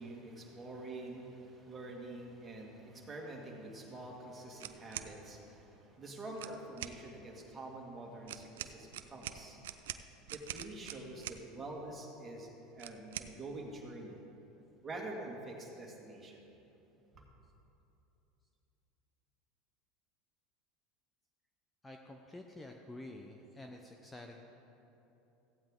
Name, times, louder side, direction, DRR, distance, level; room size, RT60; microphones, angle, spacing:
voice 1, 0.0-9.6 10.3-14.3 14.8-16.4 17.1-17.2, right 2 dB, 20° right, -1 dB, 2.0 m, -46 dB
sound 1, 4.6-5.1 6.3-7.0 8.3-11.4 12.8-13.3, right 12 dB, 85° right, 0.4 m, -44 dB
voice 2, 21.8-24.4, left 1 dB, 15° left, 3 dB, 0.7 m, -49 dB
15.0 x 8.7 x 3.7 m, 3.0 s
supercardioid pair, 110°, 0 cm